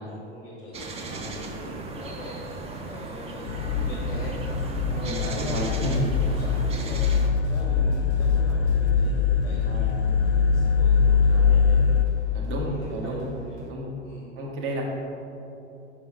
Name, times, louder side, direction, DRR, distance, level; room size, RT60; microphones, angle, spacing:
voice 1, 0.0-2.4 2.8-4.4 4.8-7.1 7.5-9.9 10.2-12.0 12.6-13.2 13.4-14.3, left 1 dB, 10° left, -3 dB, 0.9 m, -42 dB
sound 1, 0.7-7.3, right 3 dB, 20° right, 0.5 m, -37 dB
sound 2, 3.5-12.0, left 5 dB, 70° left, 0.5 m, -22 dB
voice 2, 4.9-6.1 9.6-10.2 11.3-11.5 12.3-13.3 13.7-14.0 14.3-14.8, right 1 dB, 40° right, -3 dB, 1.4 m, -32 dB
sound 3, 7.1-13.7, right 5 dB, 85° right, 0.6 m, -45 dB
6.1 x 5.3 x 3.3 m, 2.9 s
figure-of-eight pair, 80°, 33 cm